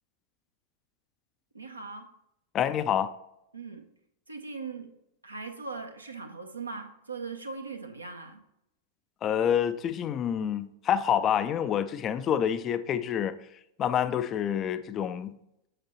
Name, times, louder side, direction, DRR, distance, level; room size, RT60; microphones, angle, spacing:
voice 1, 1.5-2.1 3.5-3.8 4.3-4.9 5.2-8.4, right 4 dB, 85° right, 0.8 m, -39 dB
voice 2, 2.5-3.1 9.2-13.4 13.8-15.4, left 9 dB, 30° left, 0.4 m, -27 dB
7.8 x 5.9 x 3.0 m
figure-of-eight pair, 90°, 0 cm